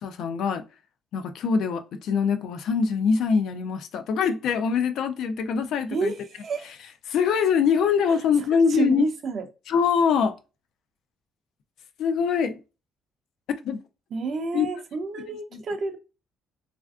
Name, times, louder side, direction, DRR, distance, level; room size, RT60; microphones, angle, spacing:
voice 1, 0.0-0.6 1.1-6.1 7.1-9.1 9.7-10.4 12.0-12.6 13.6-13.8 14.5-14.7 15.5-15.6, left 6 dB, 60° left, 0.3 m, -23 dB
voice 2, 5.9-6.8 8.1-9.4 14.1-16.0, right 4 dB, 40° right, 0.5 m, -30 dB
3.3 x 2.5 x 2.3 m
cardioid pair, 160°, 0 cm